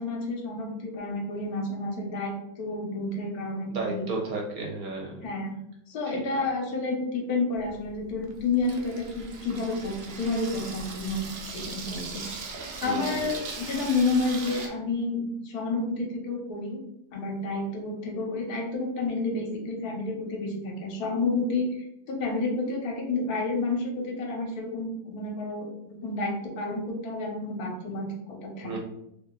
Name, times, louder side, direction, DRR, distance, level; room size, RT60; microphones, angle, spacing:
voice 1, 0.0-4.1 5.2-5.5 5.9-12.3 12.8-16.8 17.1-21.7 22.1-28.8, left 3 dB, 70° left, 1 dB, 1.2 m, -30 dB
voice 2, 3.7-5.2 6.1-6.2 12.8-13.3 28.6-28.8, right 3 dB, 65° right, -1 dB, 1.2 m, -33 dB
Water tap faucet / Sink (filling or washing), 7.6-14.7, right 4 dB, 85° right, 0.5 m, -39 dB
2.9 x 2.5 x 3.7 m, 0.78 s
omnidirectional pair, 1.7 m